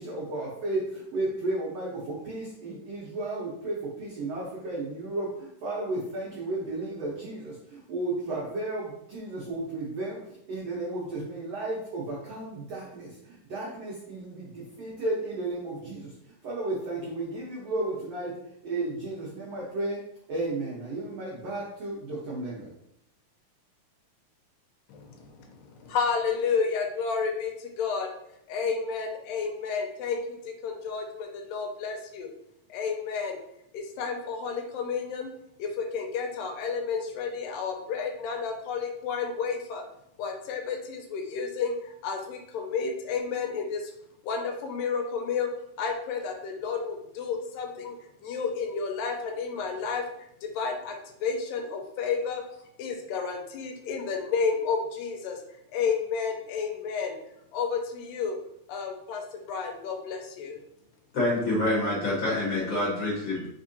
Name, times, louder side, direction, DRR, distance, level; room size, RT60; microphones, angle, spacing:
voice 1, 0.0-18.4 18.6-20.0 20.3-22.7, right 2 dB, 80° right, -5 dB, 1.4 m, -33 dB
voice 2, 24.9-28.1 28.5-32.3 32.7-33.4 33.7-35.3 35.6-39.8 40.2-43.9 44.2-45.5 45.8-48.0 48.2-52.4 52.8-55.4 55.7-57.1 57.5-58.4 58.7-60.6, left 5 dB, 85° left, 3 dB, 2.2 m, -31 dB
voice 3, 61.1-63.5, left 1 dB, 45° left, -7 dB, 1.6 m, -26 dB
4.7 x 3.5 x 2.6 m, 0.76 s
omnidirectional pair, 4.0 m